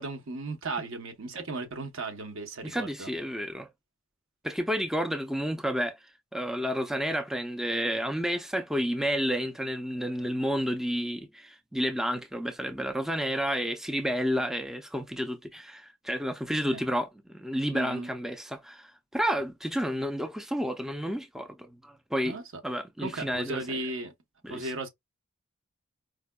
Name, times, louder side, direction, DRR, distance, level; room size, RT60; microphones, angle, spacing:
voice 1, 0.0-3.1 16.7-16.8 17.7-18.1 22.2-22.4 23.0-24.1 24.5-24.9, right 2 dB, 65° right, 0.8 m, -36 dB
voice 2, 2.6-3.7 4.4-22.4 22.6-23.8 24.4-24.7, equal, ahead, 0.3 m, -31 dB
4.7 x 2.2 x 2.2 m
head